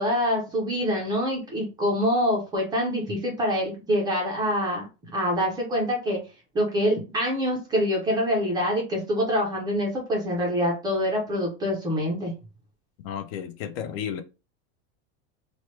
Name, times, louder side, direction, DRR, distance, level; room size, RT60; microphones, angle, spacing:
voice 1, 0.0-4.8 5.1-6.2 6.5-12.3, equal, 10° right, 0.3 m, -25 dB
voice 2, 13.0-14.2, left 8 dB, 55° left, 0.5 m, -32 dB
3.0 x 2.1 x 3.0 m
supercardioid pair, 170°, 36 cm